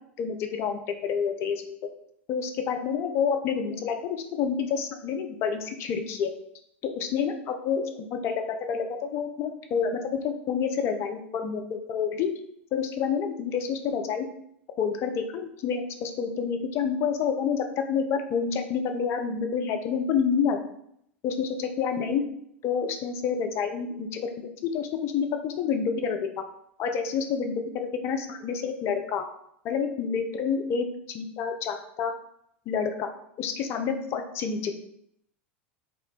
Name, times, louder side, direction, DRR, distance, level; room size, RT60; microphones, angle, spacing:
voice 1, 0.2-1.8 2.3-4.0 4.3-6.3 6.8-12.3 12.7-14.3 14.8-20.6 21.2-21.5 21.8-22.2 22.6-26.3 26.8-29.3 29.6-30.9 31.1-32.1 32.7-33.1 33.4-34.8, left 6 dB, 40° left, 6 dB, 0.4 m, -28 dB
2.1 x 2.1 x 3.7 m, 0.72 s
figure-of-eight pair, 85°, 7 cm